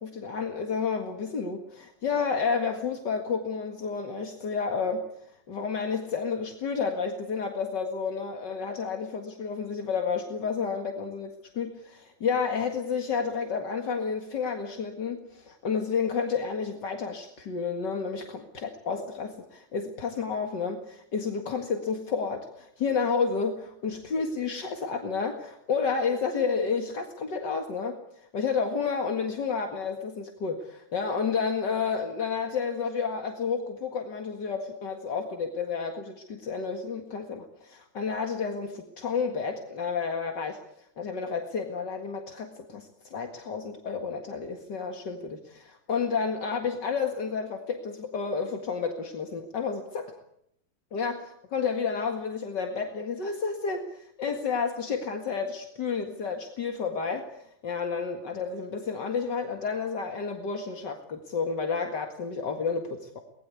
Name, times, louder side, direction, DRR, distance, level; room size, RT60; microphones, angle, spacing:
voice 1, 0.0-5.1 5.5-28.0 28.3-40.6 41.0-50.2 50.9-63.2, left 5 dB, 75° left, 4 dB, 2.6 m, -31 dB
24.0 x 20.0 x 8.3 m, 0.75 s
omnidirectional pair, 1.9 m